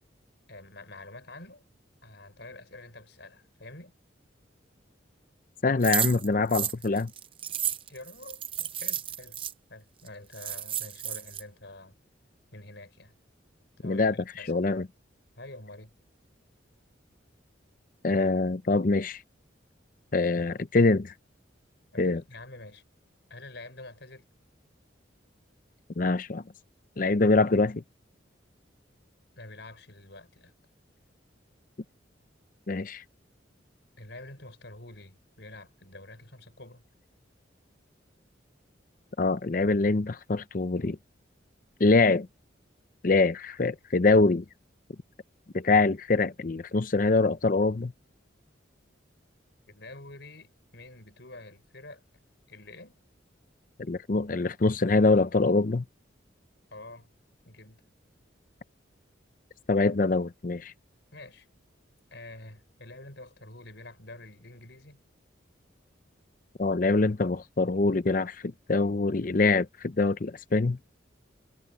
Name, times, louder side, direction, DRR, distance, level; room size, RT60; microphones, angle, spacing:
voice 1, 0.5-1.6 2.0-3.9 7.9-9.4 9.7-11.9 12.5-13.1 13.8-14.5 15.4-15.9 21.9-22.8 23.3-24.2 29.4-30.5 34.0-36.8 49.7-52.0 52.5-53.0 56.7-57.1 57.4-57.8 61.1-61.5 62.1-65.0, left 2 dB, 60° left, 6.0 m, -47 dB
voice 2, 5.6-7.1 13.8-14.1 14.5-14.9 18.0-19.2 20.1-21.1 22.0-22.2 26.0-26.4 27.0-27.8 32.7-33.0 39.2-41.0 41.8-42.3 43.0-44.4 45.5-47.9 53.9-55.8 59.7-60.7 66.6-70.8, left 3 dB, 45° left, 0.6 m, -24 dB
sound 1, 5.8-9.5 10.1-10.2 10.3-11.4, right 10 dB, 25° right, 0.6 m, -32 dB
head